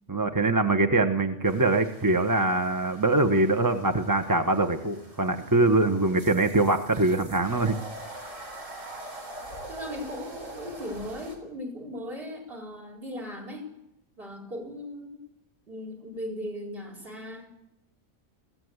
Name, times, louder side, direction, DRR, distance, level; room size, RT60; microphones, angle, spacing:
voice 1, 0.1-7.8, right 2 dB, 15° right, 6 dB, 1.0 m, -23 dB
sound 1, 1.4-11.4, right 1 dB, 75° right, 4.7 m, -44 dB
voice 2, 9.7-13.7 14.2-15.2 15.7-17.5, left 1 dB, 45° right, 3 dB, 5.1 m, -38 dB
21.5 x 16.5 x 8.0 m, 0.86 s
omnidirectional pair, 1.3 m